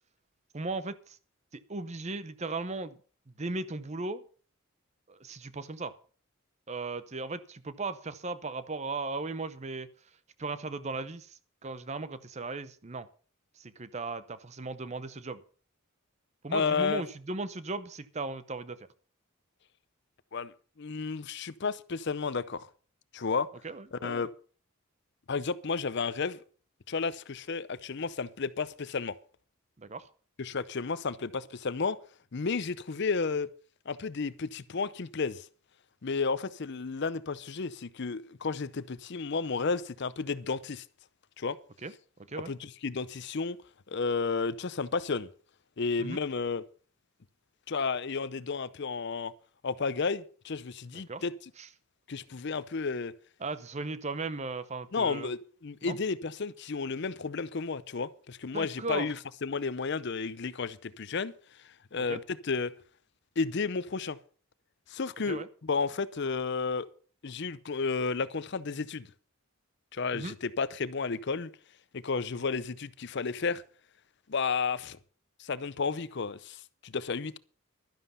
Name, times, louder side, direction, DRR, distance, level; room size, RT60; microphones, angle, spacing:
voice 1, 0.5-1.2 1.5-3.0 3.4-4.2 5.1-6.0 6.7-9.9 10.4-13.1 13.6-15.4 16.4-18.9 23.6-24.3 29.8-30.1 41.8-41.9 42.3-42.5 46.0-46.2 50.9-51.2 51.6-51.7 53.4-55.3 55.8-56.0 58.5-59.1 62.1-62.2 65.3-65.5 70.1-70.3, right 3 dB, 30° right, 0.7 m, -37 dB
voice 2, 16.5-17.0 20.3-22.7 23.1-23.5 23.9-24.3 25.3-26.4 26.9-29.2 30.4-32.0 32.3-33.5 33.9-35.5 36.0-40.8 41.4-41.6 42.5-43.6 43.9-45.3 45.8-46.6 47.7-49.3 49.6-51.3 52.1-53.1 54.9-61.3 61.6-62.7 63.4-64.2 64.9-66.9 67.2-69.1 69.9-71.5 71.9-73.6 74.3-75.0 75.4-77.4, left 4 dB, 55° left, 0.6 m, -32 dB
12.0 x 11.0 x 5.5 m
head